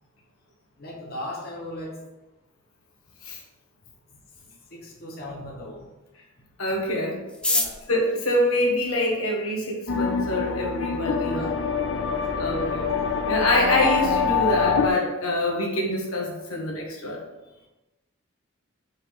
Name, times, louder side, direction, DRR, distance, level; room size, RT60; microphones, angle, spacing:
voice 1, 0.8-2.0 4.5-5.9 7.5-7.8 11.3-11.6 17.4-17.7, left 1 dB, 50° left, -3 dB, 1.3 m, -38 dB
voice 2, 6.6-7.2 7.9-11.5 12.4-12.9 13.2-17.2, left 1 dB, 85° left, -2 dB, 1.6 m, -25 dB
sound 1, 7.3-9.5 10.3-10.4 10.6-10.7 11.0-11.5 11.8-11.9 12.1-12.5 12.8-13.0 13.4-13.7, left 2 dB, 5° left, 0.5 m, -29 dB
sound 2, 9.9-14.9, left 6 dB, 65° left, 0.5 m, -25 dB
5.4 x 3.8 x 5.7 m, 1.0 s
head